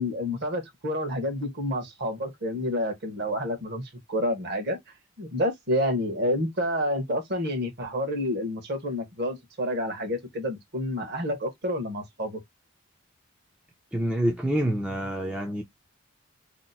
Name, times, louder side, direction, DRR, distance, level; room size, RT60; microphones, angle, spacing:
voice 1, 0.0-3.8 4.1-4.8 5.2-12.4, left 1 dB, 50° right, 1.0 m, -29 dB
voice 2, 13.9-15.6, right 1 dB, 5° right, 0.4 m, -27 dB
2.8 x 2.0 x 3.9 m
head